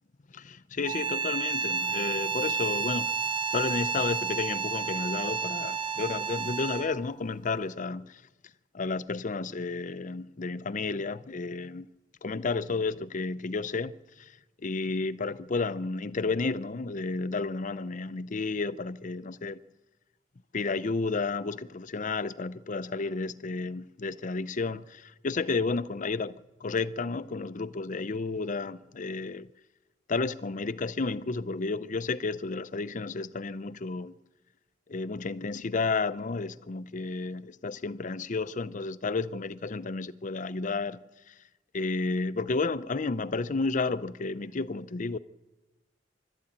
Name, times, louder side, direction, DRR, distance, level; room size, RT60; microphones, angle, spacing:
voice 1, 0.3-3.1 3.5-8.2 8.7-11.9 12.2-14.4 14.6-19.6 20.5-29.5 30.1-34.1 34.9-41.0 41.3-41.4 41.7-45.2, left 3 dB, 45° left, 0.6 m, -32 dB
sound 1, 0.8-7.0, right 6 dB, 25° right, 0.8 m, -31 dB
24.5 x 12.5 x 8.9 m
head